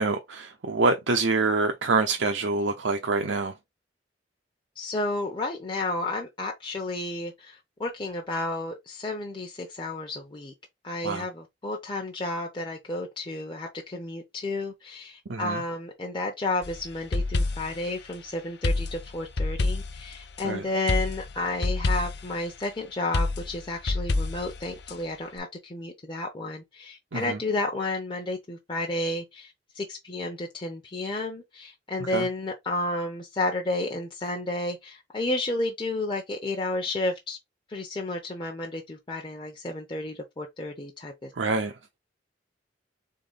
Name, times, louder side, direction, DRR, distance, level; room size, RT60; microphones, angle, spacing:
voice 1, 0.0-3.5 11.0-11.3 15.3-15.6 20.4-20.6 27.1-27.4 32.1-32.3 41.4-41.8, right 3 dB, 80° right, 0.7 m, -26 dB
voice 2, 4.8-10.5 10.8-37.4 37.7-41.3, left 2 dB, 25° left, 0.8 m, -32 dB
sound 1, 16.6-17.8 18.6-20.4 20.9-22.3 23.1-24.9, left 2 dB, 65° left, 0.7 m, -28 dB
3.8 x 3.6 x 3.8 m
head